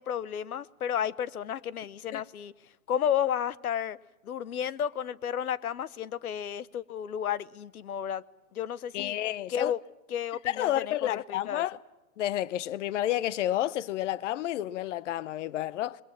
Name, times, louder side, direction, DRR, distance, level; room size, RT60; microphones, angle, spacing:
voice 1, 0.0-2.5 2.9-4.0 4.2-8.2 8.5-9.2 9.5-9.8 10.1-11.6, left 9 dB, 85° left, 1.0 m, -32 dB
voice 2, 8.9-9.7 10.4-11.8 12.2-16.0, left 13 dB, 55° left, 0.9 m, -30 dB
27.0 x 21.5 x 7.3 m
hypercardioid pair, 145°, 43 cm